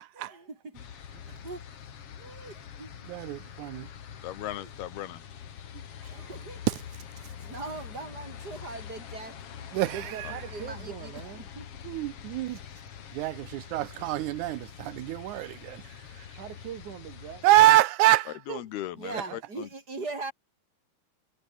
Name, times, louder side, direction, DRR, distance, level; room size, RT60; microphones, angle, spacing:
voice 1, 0.2-1.7 2.2-3.0 4.6-4.7 6.0-6.6 7.5-9.4 10.0-11.6 19.0-20.3, right 3 dB, 25° right, 6.2 m, -41 dB
sound 1, 0.7-17.5, left 8 dB, 45° left, 2.2 m, -45 dB
voice 2, 3.1-3.9 9.7-10.4 11.8-12.6 13.1-15.8 16.2-16.3 17.4-18.6, right 16 dB, 90° right, 1.7 m, -25 dB
voice 3, 4.2-5.2 10.2-10.3 18.5-19.7, left 13 dB, 85° left, 3.4 m, -38 dB
voice 4, 6.1-6.4 9.9-11.5 16.4-17.4 19.3-19.4, right 10 dB, 55° right, 3.1 m, -42 dB
omnidirectional pair, 4.4 m